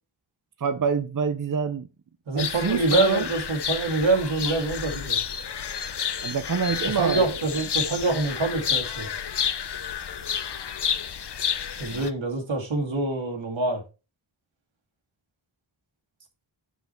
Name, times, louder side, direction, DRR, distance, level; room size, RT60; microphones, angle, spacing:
voice 1, 0.6-1.9 2.3-3.3 6.2-7.4 11.9-12.1, right 5 dB, 45° right, 0.7 m, -26 dB
voice 2, 2.3-5.2 7.0-9.1 11.8-13.8, right 3 dB, 90° right, 2.2 m, -25 dB
sound 1, 2.4-12.1, left 7 dB, 60° left, 0.8 m, -30 dB
7.9 x 5.8 x 4.4 m
wide cardioid pair, 85°, 45 cm